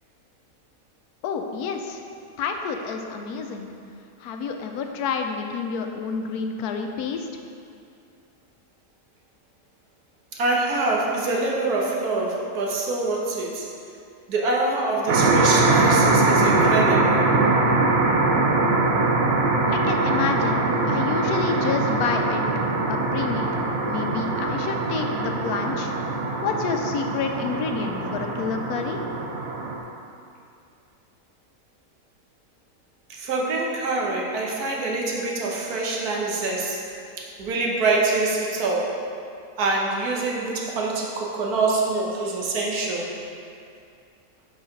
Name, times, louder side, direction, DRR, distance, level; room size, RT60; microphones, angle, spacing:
voice 1, 1.2-2.0 2.4-3.7 4.2-7.3 19.7-22.4 22.9-23.5 23.8-25.9 26.4-29.0, left 5 dB, 85° left, 4 dB, 1.1 m, -29 dB
voice 2, 10.3-13.7 14.3-17.2 33.1-36.8 37.2-39.0 39.6-43.1, right 3 dB, 85° right, -2 dB, 1.4 m, -25 dB
sound 1, 15.1-29.8, right 3 dB, 60° right, 0.9 m, -22 dB
5.1 x 4.8 x 5.1 m, 2.5 s
omnidirectional pair, 1.6 m